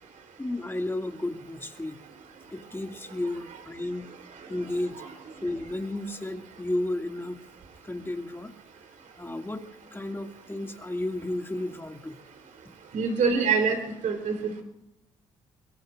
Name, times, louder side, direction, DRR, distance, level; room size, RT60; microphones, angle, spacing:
voice 1, 0.4-2.0 2.5-4.1 4.5-4.9 5.4-7.4 7.8-8.5 9.2-9.6 9.9-12.2, left 1 dB, 15° left, 4 dB, 2.3 m, -32 dB
voice 2, 12.9-13.8 14.0-14.6, right 5 dB, 65° right, 4 dB, 3.7 m, -24 dB
24.0 x 22.5 x 2.6 m, 0.88 s
hypercardioid pair, 45°, 14 cm